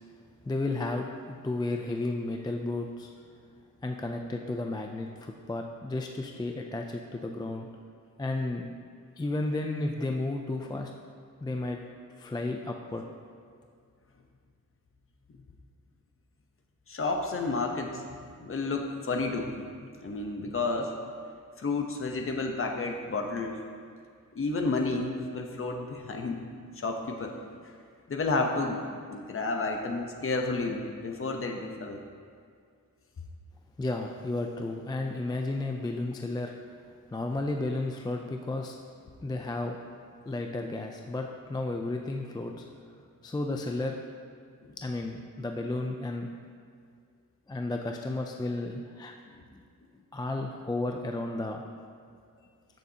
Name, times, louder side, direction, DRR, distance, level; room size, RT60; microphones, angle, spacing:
voice 1, 0.5-3.1 3.8-7.7 8.2-8.7 9.2-10.9 11.4-11.8 12.2-13.0 33.8-36.5 37.1-38.8 39.2-39.8 40.3-42.6 43.2-44.0 44.8-46.3 47.5-49.1 49.5-49.6 50.1-51.6, left 2 dB, 15° left, 2 dB, 0.3 m, -33 dB
voice 2, 16.9-18.0 18.4-19.6 20.0-20.9 21.6-23.6 24.3-26.4 26.8-27.3 28.1-28.8 29.1-32.0 44.6-44.7 49.3-49.4, left 3 dB, 40° left, 3 dB, 0.8 m, -31 dB
14.0 x 6.7 x 2.8 m, 2.2 s
wide cardioid pair, 170°, 34 cm